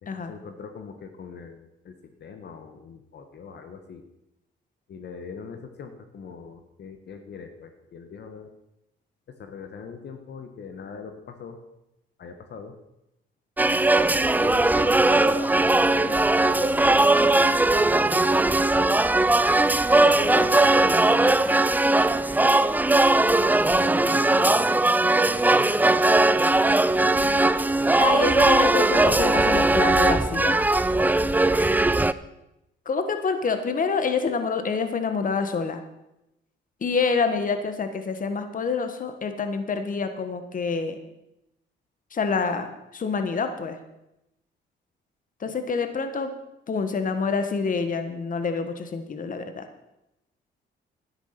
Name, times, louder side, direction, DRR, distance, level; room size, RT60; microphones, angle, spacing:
voice 1, 0.0-4.0 4.9-8.5 9.3-11.6 12.2-12.8 14.4-15.5 15.8-18.7 19.9-21.5 23.2-25.7 26.0-26.2 27.0-27.5 45.5-45.6, left 5 dB, 60° left, 7 dB, 1.4 m, -41 dB
sound 1, 13.6-32.1, right 2 dB, 10° right, 0.5 m, -19 dB
voice 2, 20.0-20.4 28.0-30.6 32.8-35.8 36.8-41.0 42.1-42.7 42.9-43.8 45.4-46.3 46.7-49.6, left 5 dB, 40° left, 8 dB, 1.5 m, -27 dB
13.0 x 9.9 x 5.9 m, 0.89 s
cardioid pair, 90°, 20 cm